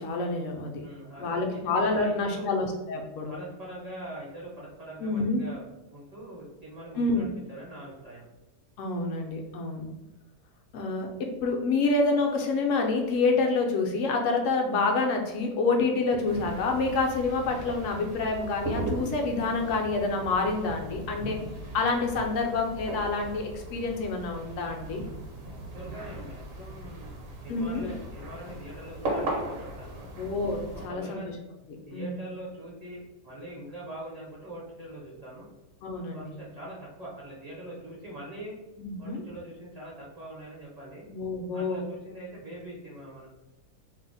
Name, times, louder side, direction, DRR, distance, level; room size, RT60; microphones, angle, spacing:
voice 1, 0.0-0.8 1.2-3.3 5.0-5.4 7.0-7.3 8.8-9.9 10.7-21.4 21.7-25.0 27.5-27.9 30.2-31.2 31.9-32.2 35.8-36.3 38.8-39.2 41.1-41.9, left 3 dB, 70° left, 2 dB, 0.8 m, -27 dB
voice 2, 0.8-1.6 1.9-2.5 3.3-5.6 5.9-8.3 15.8-15.9 25.4-27.2 27.4-30.1 30.7-31.3 31.9-35.5 36.1-38.5 39.0-41.1 41.5-43.3, right 1 dB, 45° right, -6 dB, 0.5 m, -43 dB
sound 1, 16.2-30.9, right 1 dB, 60° right, 1.0 m, -38 dB
2.7 x 2.0 x 3.9 m, 0.99 s
omnidirectional pair, 1.7 m